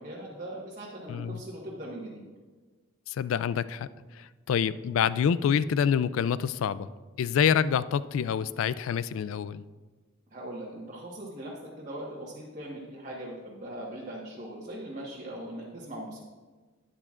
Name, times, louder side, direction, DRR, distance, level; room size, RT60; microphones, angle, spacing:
voice 1, 0.0-2.2 10.3-16.2, right 1 dB, 40° right, -5 dB, 1.2 m, -40 dB
voice 2, 3.1-3.9 4.2-6.9 7.2-9.6, left 7 dB, 80° left, 16 dB, 0.3 m, -27 dB
11.5 x 9.9 x 2.4 m, 1.3 s
head